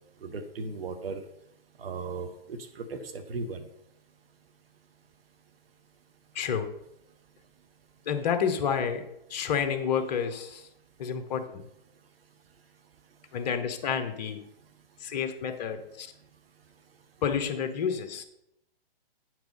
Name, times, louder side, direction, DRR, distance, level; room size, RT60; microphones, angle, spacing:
voice 1, 0.2-1.2 1.8-3.7, right 4 dB, 70° right, 6 dB, 1.2 m, -37 dB
voice 2, 6.3-6.7 8.1-9.0 9.3-10.7 11.0-11.6 13.3-14.4 15.0-16.1 17.2-18.2, left 7 dB, 45° left, 7 dB, 1.0 m, -29 dB
9.1 x 4.6 x 5.3 m, 0.81 s
hypercardioid pair, 135°, 30 cm